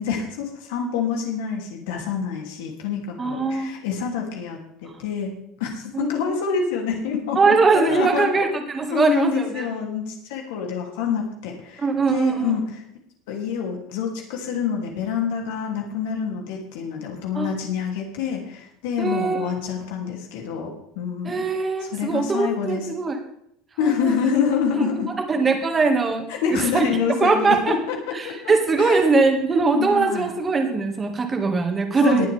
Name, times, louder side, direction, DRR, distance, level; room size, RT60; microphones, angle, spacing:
voice 1, 0.0-5.3 5.6-8.5 8.9-12.8 13.3-21.4 21.8-22.9 23.8-25.1 26.3-29.0 29.8-30.3 32.0-32.3, left 7 dB, 85° left, 1 dB, 2.9 m, -27 dB
voice 2, 3.2-3.7 5.9-6.1 7.4-9.7 11.8-12.5 17.3-17.5 19.0-19.5 21.2-23.2 23.8-24.3 24.8-24.9 25.3-26.9 27.2-27.7 28.1-32.3, right 4 dB, 20° right, 5 dB, 1.9 m, -21 dB
21.0 x 7.9 x 3.5 m, 0.73 s
cardioid pair, 150°, 0 cm